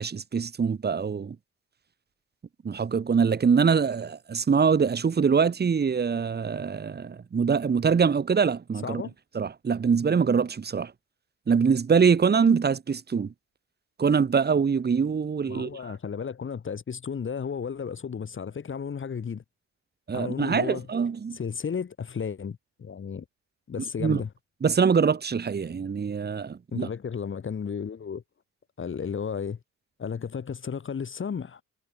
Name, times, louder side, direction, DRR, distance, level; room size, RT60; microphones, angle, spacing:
voice 1, 0.0-1.4 2.6-9.0 9.3-10.9 11.5-13.3 14.0-15.9 20.1-21.4 24.0-24.2 24.6-26.9, right 6 dB, 35° right, 1.7 m, -24 dB
voice 2, 8.8-9.1 15.5-19.4 20.1-20.9 21.3-23.2 23.7-24.3 26.7-28.2 28.8-29.6 30.0-31.6, left 6 dB, 40° left, 2.7 m, -33 dB
cardioid pair, 90°, 30 cm